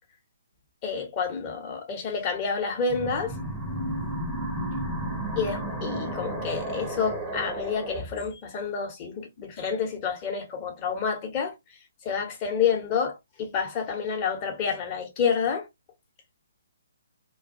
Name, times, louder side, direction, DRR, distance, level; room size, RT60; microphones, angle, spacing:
voice 1, 0.8-3.4 5.4-11.5 12.0-15.7, left 6 dB, 25° left, 0.9 m, -29 dB
sound 1, 2.9-8.0, right 1 dB, ahead, 0.6 m, -32 dB
2.4 x 2.2 x 2.6 m
figure-of-eight pair, 135°, 0 cm